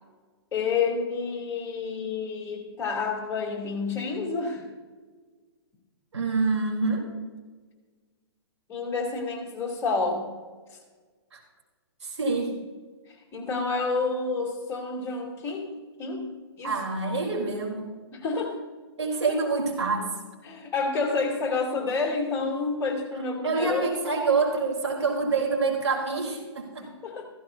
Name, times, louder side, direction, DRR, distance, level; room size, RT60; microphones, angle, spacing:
voice 1, 0.5-4.6 8.7-10.3 10.7-10.8 13.3-16.3 16.6-16.7 18.1-18.6 20.4-24.0 27.0-27.3, left 4 dB, 20° left, -3 dB, 3.2 m, -29 dB
voice 2, 6.1-7.1 11.3-11.4 12.0-12.5 16.6-17.9 19.0-20.1 23.4-26.9, right 4 dB, 85° right, 0 dB, 3.9 m, -26 dB
15.5 x 15.5 x 2.8 m, 1.4 s
hypercardioid pair, 140°, 14 cm